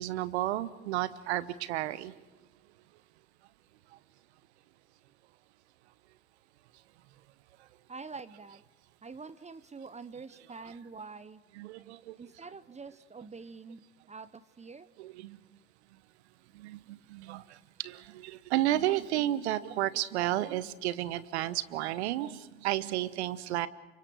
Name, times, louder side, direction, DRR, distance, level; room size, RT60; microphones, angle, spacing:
voice 1, 0.0-2.1 11.6-12.1 15.0-15.4 16.6-16.8 17.1-17.4 17.8-23.7, right 14 dB, 75° right, 17 dB, 1.1 m, -32 dB
voice 2, 7.9-8.6 9.0-11.4 12.2-13.8 14.1-14.9, right 4 dB, 20° right, 15 dB, 1.0 m, -46 dB
30.0 x 26.5 x 4.8 m, 1.2 s
hypercardioid pair, 65°, 33 cm